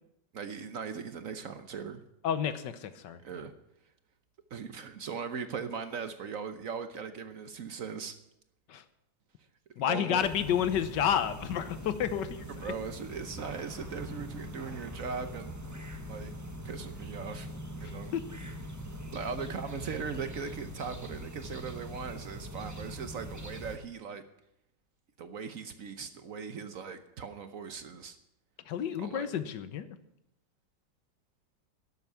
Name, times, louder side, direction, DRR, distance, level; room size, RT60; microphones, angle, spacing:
voice 1, 0.3-2.0 3.2-3.5 4.5-8.1 9.8-10.3 12.5-15.5 16.1-16.3 16.6-17.5 17.8-18.1 19.1-24.2 25.2-28.2 29.0-29.3, right 6 dB, 55° right, 10 dB, 1.1 m, -39 dB
voice 2, 2.2-3.2 8.7-8.8 9.8-12.7 18.1-18.2 28.7-29.9, left 9 dB, 75° left, 12 dB, 1.5 m, -30 dB
sound 1, 10.2-23.8, equal, 15° right, 0.8 m, -42 dB
11.5 x 8.1 x 9.5 m, 0.82 s
omnidirectional pair, 1.9 m